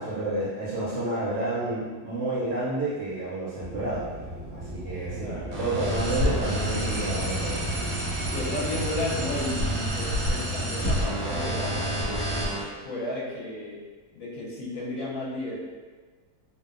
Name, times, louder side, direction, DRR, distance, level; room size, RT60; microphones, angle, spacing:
voice 1, 0.0-4.0 4.5-7.9, right 2 dB, 70° right, -7 dB, 0.8 m, -30 dB
sound 1, 3.6-12.5, right 1 dB, 20° left, 0.5 m, -34 dB
voice 2, 5.2-5.6 8.2-12.5 12.8-13.8 14.1-15.6, left 2 dB, 65° left, -6 dB, 1.0 m, -34 dB
sound 2, 5.5-12.6, equal, 90° right, 1.3 m, -29 dB
2.7 x 2.1 x 2.4 m, 1.4 s
omnidirectional pair, 1.7 m